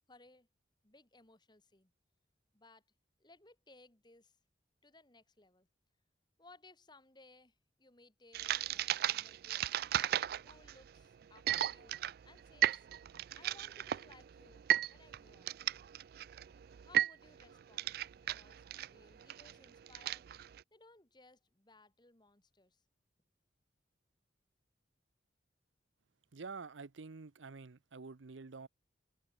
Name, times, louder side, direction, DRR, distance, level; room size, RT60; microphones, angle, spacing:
voice 1, 0.1-0.5 0.8-1.9 2.5-2.8 3.2-4.4 4.8-5.7 6.4-9.6 10.4-12.0 12.2-12.9 13.3-15.5 16.8-18.0 18.2-20.3 20.7-22.8, left 2 dB, 25° left, 2.4 m, -62 dB
sound 1, 8.3-20.6, right 11 dB, 50° right, 0.3 m, -36 dB
voice 2, 26.3-28.7, right 4 dB, 85° right, 0.8 m, -48 dB
head